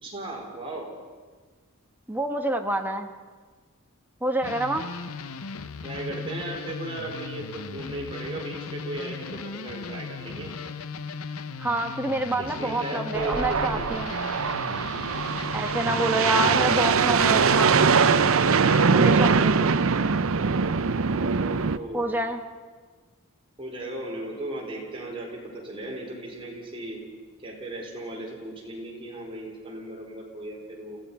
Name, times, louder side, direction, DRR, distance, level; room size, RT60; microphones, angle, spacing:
voice 1, 0.0-0.9 5.8-10.5 12.4-13.9 21.0-22.0 23.6-27.0 27.4-31.0, right 1 dB, 25° right, -2 dB, 4.6 m, -36 dB
voice 2, 2.1-3.1 4.2-4.9 11.6-14.1 15.5-17.9 18.9-19.6 21.9-22.4, right 1 dB, 10° right, 4 dB, 1.3 m, -27 dB
sound 1, 4.4-18.8, left 5 dB, 90° left, 0.8 m, -37 dB
sound 2, 13.1-21.8, right 5 dB, 70° right, 0.6 m, -22 dB
28.0 x 16.5 x 5.7 m, 1.4 s
head